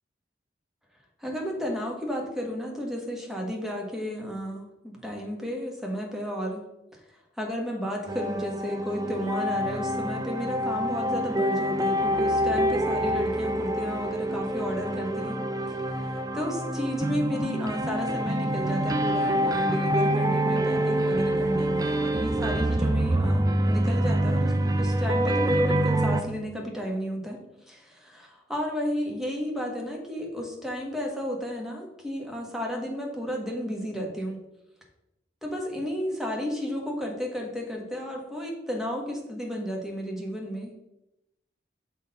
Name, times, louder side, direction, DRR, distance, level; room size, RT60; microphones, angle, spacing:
voice 1, 1.2-6.6 6.9-7.0 7.4-15.4 15.7-34.4 35.4-40.8, equal, ahead, 0 dB, 1.2 m, -33 dB
sound 1, 8.1-26.2, right 1 dB, 20° right, 0.4 m, -26 dB
6.2 x 4.1 x 5.3 m, 0.90 s
head